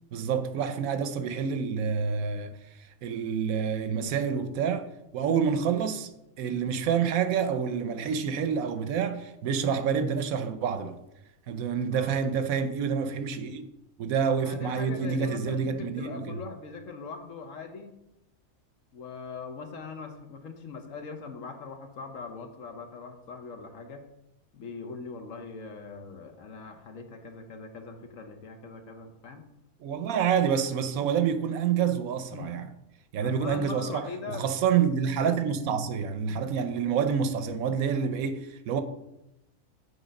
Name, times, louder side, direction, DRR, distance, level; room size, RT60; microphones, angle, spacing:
voice 1, 0.1-4.9 5.1-6.1 6.4-11.0 11.5-13.7 14.0-16.4 29.8-32.7 33.1-38.8, right 7 dB, 70° right, 1.0 m, -28 dB
voice 2, 14.2-17.9 18.9-24.0 24.5-29.4 32.3-32.6 33.2-34.4, left 4 dB, 60° left, 1.1 m, -41 dB
8.0 x 3.9 x 5.2 m
omnidirectional pair, 1.6 m